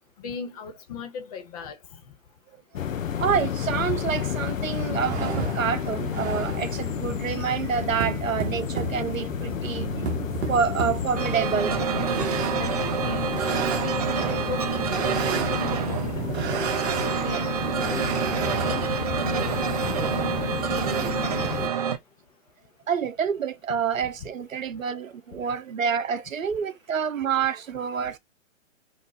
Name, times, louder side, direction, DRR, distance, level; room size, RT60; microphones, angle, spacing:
voice 1, 0.2-1.8 6.3-6.4 12.6-15.1 15.5-16.5 16.9-18.1 18.6-19.1 19.4-19.6 19.8-21.1 24.2-24.3, left 5 dB, 30° left, 0.7 m, -38 dB
sound 1, 2.7-21.7, left 9 dB, 90° left, 0.5 m, -31 dB
voice 2, 3.2-9.9 10.5-11.8 22.9-28.2, right 7 dB, 85° right, 0.7 m, -27 dB
sound 2, 5.0-21.1, right 4 dB, 55° right, 0.8 m, -34 dB
sound 3, 11.2-22.0, right 8 dB, 30° right, 0.4 m, -28 dB
2.7 x 2.2 x 3.9 m
hypercardioid pair, 135°, 39 cm